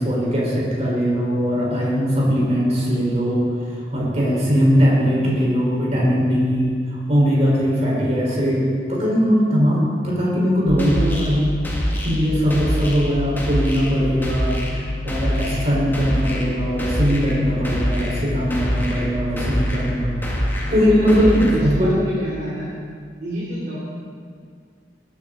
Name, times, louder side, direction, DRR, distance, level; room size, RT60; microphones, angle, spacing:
voice 1, 0.0-11.5 12.0-20.2 20.7-22.0, equal, 40° right, -5 dB, 4.2 m, -20 dB
sound 1, 10.7-21.6, equal, 10° left, 1.8 m, -25 dB
voice 2, 20.7-22.7 23.2-23.8, equal, 60° right, -9 dB, 3.2 m, -28 dB
19.0 x 9.8 x 3.8 m, 2.1 s
head